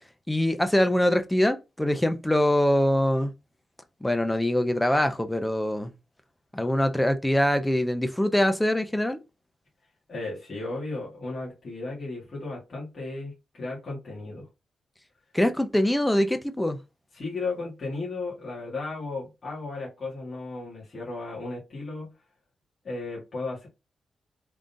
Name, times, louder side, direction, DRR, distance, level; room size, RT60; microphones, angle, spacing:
voice 1, 0.3-3.3 4.0-5.9 6.5-9.2 15.3-16.8, left 1 dB, 5° left, 0.5 m, -23 dB
voice 2, 10.1-14.5 17.1-22.1 22.8-23.7, left 3 dB, 35° left, 2.0 m, -35 dB
3.7 x 3.7 x 2.6 m
wide cardioid pair, 165°, 0 cm